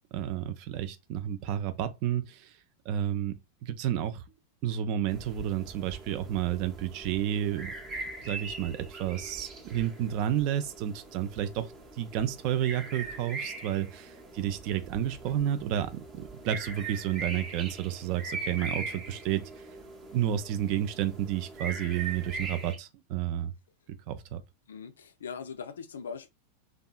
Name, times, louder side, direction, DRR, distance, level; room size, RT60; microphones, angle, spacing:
voice 1, 0.1-2.5 2.9-4.2 4.6-7.7 8.2-19.5 20.1-23.5 24.1-24.4, right 10 dB, 45° right, 0.3 m, -31 dB
sound 1, 5.1-22.8, right 3 dB, 25° right, 0.7 m, -41 dB
voice 2, 24.7-26.3, left 6 dB, 65° left, 0.3 m, -40 dB
2.6 x 2.2 x 2.3 m
figure-of-eight pair, 90°, 0 cm